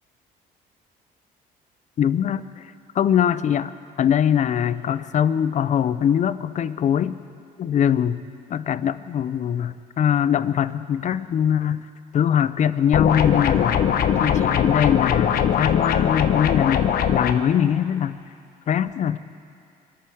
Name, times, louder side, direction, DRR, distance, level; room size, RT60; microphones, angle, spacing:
voice 1, 2.0-7.2 7.6-8.2 8.5-11.8 12.1-13.8 14.2-18.2 18.7-19.2, left 9 dB, 45° left, 15 dB, 0.6 m, -22 dB
sound 1, 12.9-17.3, left 8 dB, 60° left, 0.9 m, -20 dB
24.5 x 9.4 x 6.3 m, 2.4 s
cardioid pair, 110°, 17 cm